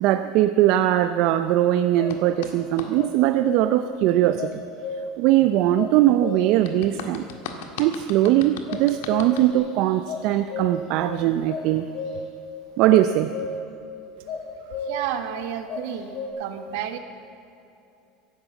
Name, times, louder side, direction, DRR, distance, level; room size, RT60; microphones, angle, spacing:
voice 1, 0.0-4.6 5.2-7.2 7.8-11.9 12.8-13.3, right 13 dB, 55° right, 9 dB, 0.5 m, -20 dB
sound 1, 2.0-2.2 2.9-3.9 4.4-5.3 5.7-6.7 8.7-9.6 9.9-11.0 11.5-12.4 12.9-13.8 14.3-15.2 15.7-16.3, left 3 dB, 50° left, 4.3 m, -33 dB
sound 2, 2.1-2.9 6.6-9.5, left 6 dB, 85° left, 1.7 m, -37 dB
voice 2, 14.6-17.0, right 10 dB, 75° right, 7 dB, 1.5 m, -31 dB
15.5 x 11.0 x 8.1 m, 2.7 s
cardioid pair, 155°, 0 cm